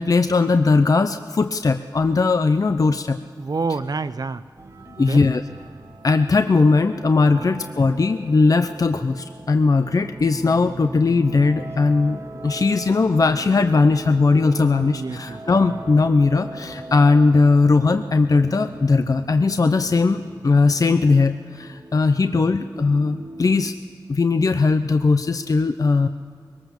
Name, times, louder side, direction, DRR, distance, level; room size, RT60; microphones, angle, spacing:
voice 1, 0.0-3.2 5.0-5.4 6.0-23.7 24.1-26.1, left 3 dB, 50° left, 9 dB, 0.6 m, -19 dB
voice 2, 3.4-4.4 5.0-5.3 7.3-7.5 14.5-15.4 15.7-15.8 22.3-22.5, right 4 dB, 60° right, 13 dB, 0.7 m, -29 dB
sound 1, 4.6-23.7, right 2 dB, 45° right, 1.4 m, -40 dB
22.5 x 19.0 x 7.1 m, 2.2 s
wide cardioid pair, 95°, 8 cm